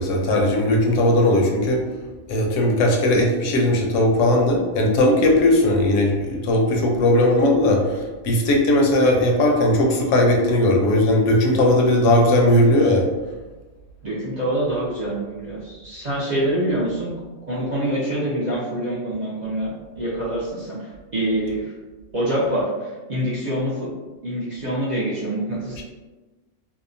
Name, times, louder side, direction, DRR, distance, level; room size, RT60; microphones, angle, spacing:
voice 1, 0.0-1.8 2.3-13.1 25.8-25.9, left 1 dB, 80° left, 0 dB, 0.9 m, -18 dB
voice 2, 14.0-17.1 17.5-21.7 22.1-23.9 24.2-25.8, right 1 dB, 55° right, -8 dB, 0.5 m, -25 dB
2.7 x 2.1 x 2.5 m, 1.2 s
omnidirectional pair, 1.3 m